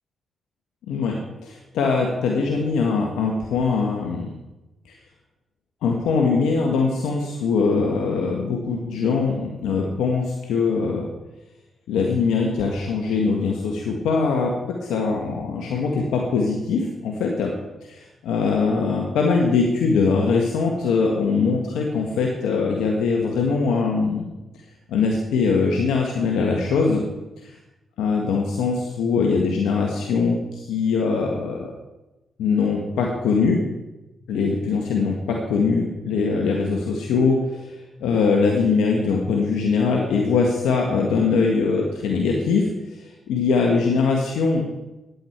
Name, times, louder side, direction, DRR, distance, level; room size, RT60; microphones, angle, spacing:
voice 1, 1.4-4.3 5.8-11.1 11.9-17.5 18.2-24.3 24.9-27.0 28.0-31.7 32.4-33.6 34.3-37.7 38.0-42.7 43.3-44.6, left 4 dB, 90° left, 0 dB, 1.7 m, -22 dB
15.5 x 10.5 x 4.6 m, 1.0 s
supercardioid pair, 60°, 0 cm